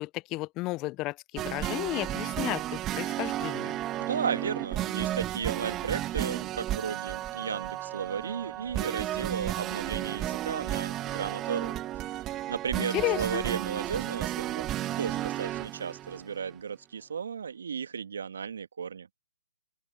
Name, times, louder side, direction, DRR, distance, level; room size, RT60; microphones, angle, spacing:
voice 1, 0.0-3.7 12.8-13.4, left 20 dB, 25° left, 0.8 m, -33 dB
sound 1, 1.4-16.6, right 13 dB, 20° right, 1.7 m, -33 dB
voice 2, 4.0-14.7 15.0-19.1, right 7 dB, 65° right, 1.9 m, -35 dB
open air
figure-of-eight pair, 135°, 0 cm